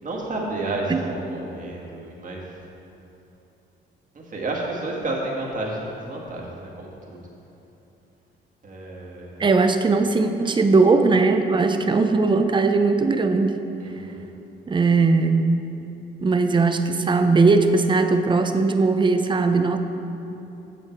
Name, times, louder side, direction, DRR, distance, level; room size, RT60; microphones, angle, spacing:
voice 1, 0.0-2.6 4.1-7.2 8.6-9.5 13.8-14.3, right 2 dB, 40° right, -2 dB, 1.9 m, -31 dB
voice 2, 9.4-13.6 14.7-15.7 16.2-19.8, right 3 dB, 25° right, 7 dB, 0.6 m, -19 dB
8.5 x 7.1 x 4.6 m, 3.0 s
cardioid pair, 90°, 20 cm